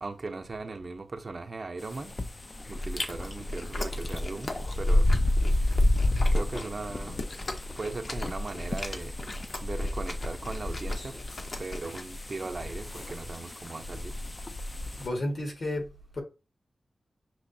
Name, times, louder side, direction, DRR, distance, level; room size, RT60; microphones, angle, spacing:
voice 1, 0.0-2.1 2.7-5.1 5.6-5.8 6.3-7.2 7.8-9.2 9.6-11.2 11.6-14.2, right 3 dB, 50° right, 0.6 m, -38 dB
sound 1, 1.8-15.1, left 1 dB, 35° left, 0.4 m, -30 dB
Chewing mastication, 2.8-12.0, left 2 dB, 55° left, 0.8 m, -39 dB
voice 2, 15.0-16.2, left 1 dB, 70° left, 1.8 m, -32 dB
6.1 x 2.9 x 2.7 m
wide cardioid pair, 70°, 0 cm